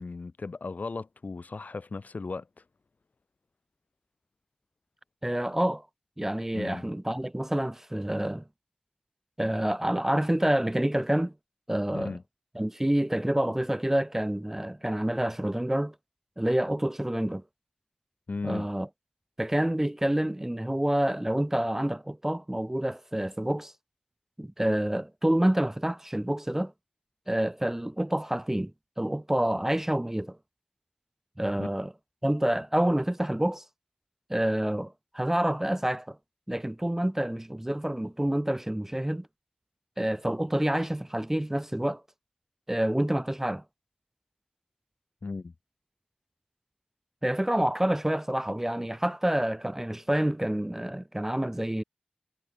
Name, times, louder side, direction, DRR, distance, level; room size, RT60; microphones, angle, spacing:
voice 1, 0.0-2.5 6.5-6.9 11.9-12.2 18.3-18.7 31.6-31.7 45.2-45.5, left 3 dB, 75° left, 1.1 m, -36 dB
voice 2, 5.2-5.8 6.2-8.4 9.4-11.3 11.7-12.1 12.6-15.9 16.4-17.4 18.4-18.9 19.4-23.7 24.4-26.7 27.3-28.7 29.0-30.4 31.4-31.9 32.2-33.6 34.3-36.2 36.5-39.3 40.0-42.0 42.7-43.6 47.2-51.8, right 1 dB, 15° right, 0.4 m, -28 dB
wide cardioid pair, 65°, 3 cm